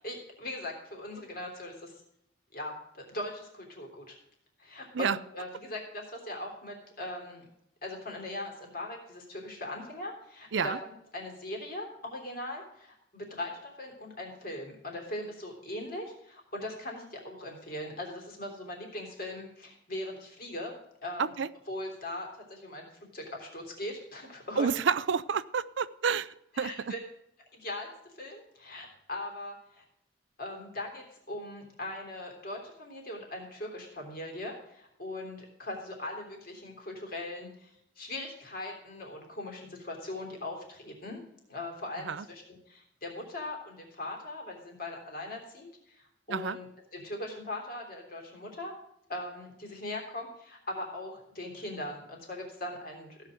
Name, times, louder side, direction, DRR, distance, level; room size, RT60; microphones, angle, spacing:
voice 1, 0.0-1.9 2.5-4.2 4.6-7.4 7.8-21.3 21.7-22.9 23.1-24.7 26.5-27.0 27.5-27.9 28.2-29.8 30.4-37.7 38.0-41.2 41.5-46.6 46.9-48.7 49.1-53.3, left 1 dB, 45° left, 1 dB, 3.3 m, -40 dB
voice 2, 24.6-26.7 42.1-42.2 46.3-46.6, right 6 dB, 70° right, 16 dB, 0.5 m, -29 dB
16.0 x 5.8 x 7.7 m, 0.78 s
head